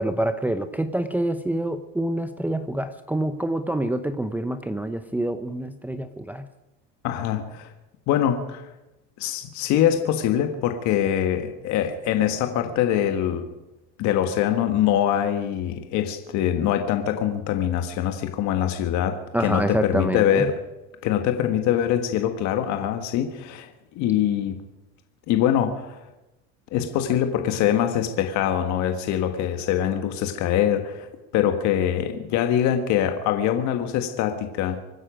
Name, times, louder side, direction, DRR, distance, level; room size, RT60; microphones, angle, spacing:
voice 1, 0.0-6.5 19.3-20.5, right 1 dB, 5° right, 8 dB, 0.7 m, -26 dB
voice 2, 7.0-7.7 8.1-8.7 9.2-13.4 14.0-20.6 21.0-23.7 23.9-24.6 25.3-26.0 26.7-31.1 31.3-34.8, left 10 dB, 60° left, 6 dB, 1.5 m, -23 dB
25.0 x 9.9 x 5.1 m, 0.99 s
supercardioid pair, 115°, 32 cm